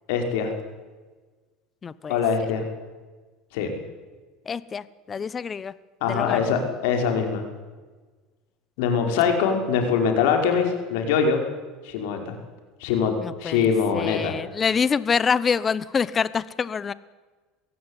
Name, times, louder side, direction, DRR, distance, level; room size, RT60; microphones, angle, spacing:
voice 1, 0.1-0.5 2.1-2.7 3.5-3.7 6.0-7.4 8.8-11.4 11.8-12.4 12.8-13.1 13.4-14.4, left 6 dB, 80° left, 4 dB, 5.1 m, -23 dB
voice 2, 1.8-2.2 4.5-5.7 6.1-6.4 13.2-16.9, left 6 dB, 25° left, 18 dB, 0.9 m, -26 dB
22.0 x 16.0 x 9.9 m, 1.3 s
cardioid pair, 140°, 0 cm